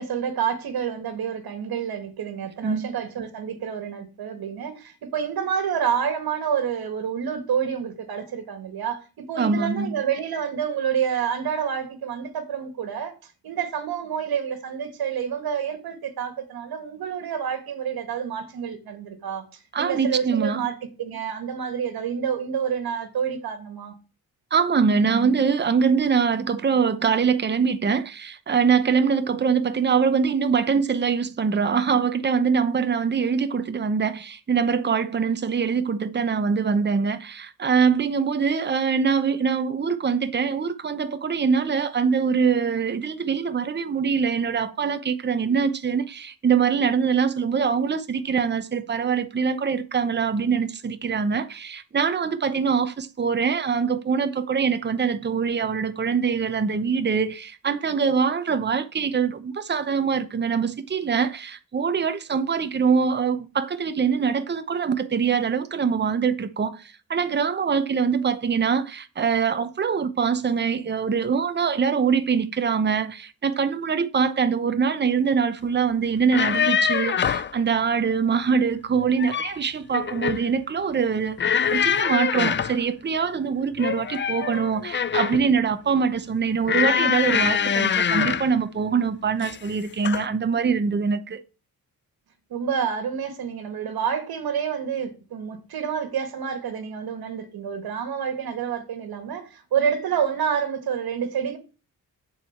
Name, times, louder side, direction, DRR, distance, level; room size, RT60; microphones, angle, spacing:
voice 1, 0.0-13.1 13.4-19.4 19.8-23.9 92.5-101.6, right 7 dB, 80° right, 1.7 m, -28 dB
voice 2, 9.4-10.0 19.7-20.7 24.5-91.4, right 6 dB, 30° right, 0.8 m, -23 dB
sound 1, 76.2-77.5 79.0-79.6 79.9-80.5 81.4-82.8 83.8-85.5 86.7-88.5 89.4-89.7 90.0-90.3, left 7 dB, 30° left, 0.5 m, -24 dB
7.5 x 4.9 x 7.2 m
cardioid pair, 110°, 36 cm